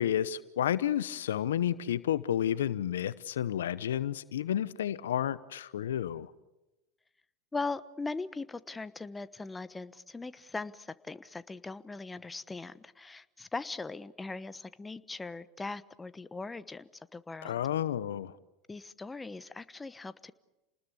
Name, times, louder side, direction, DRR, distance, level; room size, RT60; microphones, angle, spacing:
voice 1, 0.0-6.3 17.4-18.3, left 10 dB, 80° left, 0.8 m, -31 dB
voice 2, 7.5-17.6 18.7-20.3, left 3 dB, 15° left, 1.1 m, -40 dB
29.5 x 20.0 x 8.3 m
hypercardioid pair, 85°, 0 cm